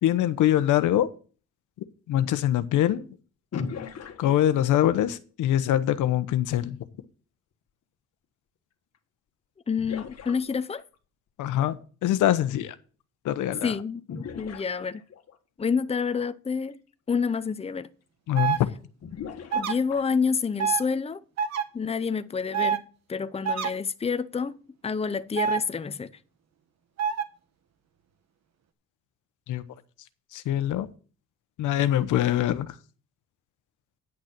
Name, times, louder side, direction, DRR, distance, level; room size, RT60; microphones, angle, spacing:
voice 1, 0.0-1.1 2.1-3.1 4.2-6.8 11.4-11.8 12.0-12.7 13.2-13.7 18.3-18.7 29.5-29.6 30.3-30.9 31.6-32.7, left 12 dB, 85° left, 1.0 m, -23 dB
sound 1, 3.5-5.0 8.9-9.0 9.8-11.0 14.1-15.4 16.7-16.8 17.3-17.4 19.0-20.3, left 6 dB, 55° left, 1.6 m, -38 dB
voice 2, 9.7-10.8 13.6-15.0 15.6-16.8 17.1-17.9 19.5-21.2 21.7-24.6 24.8-26.1, left 5 dB, 20° left, 0.7 m, -28 dB
sound 2, 18.3-18.6 19.5-19.7 20.6-20.8 21.4-21.6 22.5-22.8 23.4-23.7 25.4-25.6 27.0-27.2, right 8 dB, 60° right, 1.3 m, -25 dB
10.0 x 6.5 x 5.9 m
cardioid pair, 90°, 30 cm